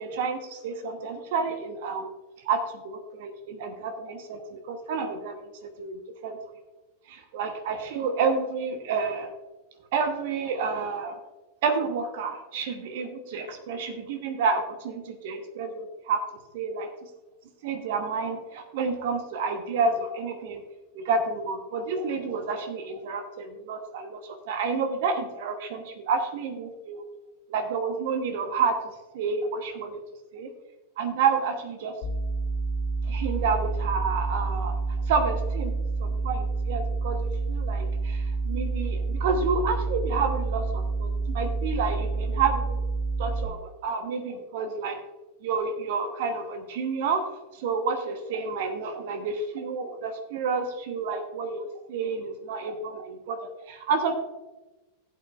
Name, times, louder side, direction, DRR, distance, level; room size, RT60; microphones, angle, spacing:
voice 1, 0.0-2.1 2.4-5.5 5.8-6.4 7.1-9.3 9.9-11.2 11.6-16.2 16.5-16.9 17.6-20.6 20.9-27.0 27.5-30.0 30.3-30.5 31.0-31.9 33.1-34.8 35.0-35.7 36.0-42.8 43.2-45.0 45.4-47.3 47.6-54.2, right 5 dB, 50° right, 7 dB, 1.1 m, -29 dB
sound 1, 32.0-43.4, right 3 dB, 45° left, 1.9 m, -28 dB
16.5 x 8.4 x 2.4 m, 1.1 s
figure-of-eight pair, 90°, 0 cm